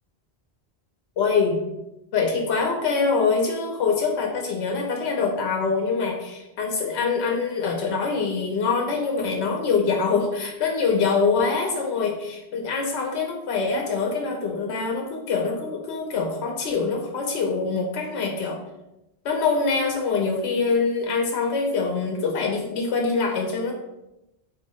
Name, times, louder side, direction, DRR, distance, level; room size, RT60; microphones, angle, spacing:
voice 1, 1.2-1.6 2.1-18.6 19.2-23.7, left 4 dB, 90° left, 1 dB, 0.9 m, -24 dB
4.0 x 2.7 x 4.2 m, 0.94 s
omnidirectional pair, 1.1 m